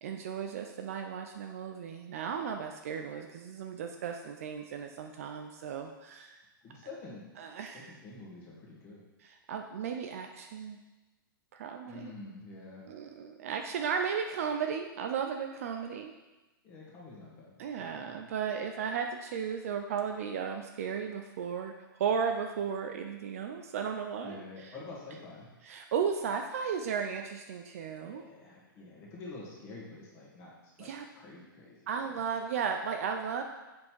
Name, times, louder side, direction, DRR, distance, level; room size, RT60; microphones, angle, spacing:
voice 1, 0.0-6.4 7.4-7.9 9.2-10.8 11.5-12.1 12.9-16.1 17.6-24.7 25.6-28.2 30.8-31.1 31.9-33.4, right 7 dB, 40° right, 4 dB, 0.5 m, -35 dB
voice 2, 6.6-7.3 7.7-9.0 11.8-12.9 16.6-18.2 24.2-25.5 28.0-32.2, left 3 dB, 20° left, -4 dB, 1.7 m, -48 dB
7.7 x 5.5 x 4.7 m, 1.1 s
hypercardioid pair, 170°, 12 cm